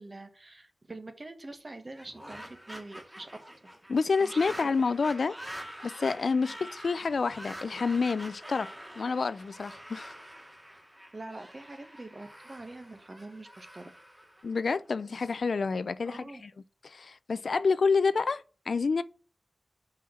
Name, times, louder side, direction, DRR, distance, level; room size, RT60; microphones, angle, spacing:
voice 1, 0.0-3.3 3.6-3.7 4.2-4.6 6.4-6.6 11.1-13.9 16.0-16.4, right 2 dB, 40° right, 1.3 m, -45 dB
sound 1, 1.9-15.1, equal, 15° right, 1.8 m, -46 dB
voice 2, 3.9-5.4 5.8-8.7 9.0-10.1 14.4-16.5 16.8-19.0, left 4 dB, 75° left, 0.3 m, -28 dB
5.6 x 4.3 x 6.1 m
wide cardioid pair, 75°, 0 cm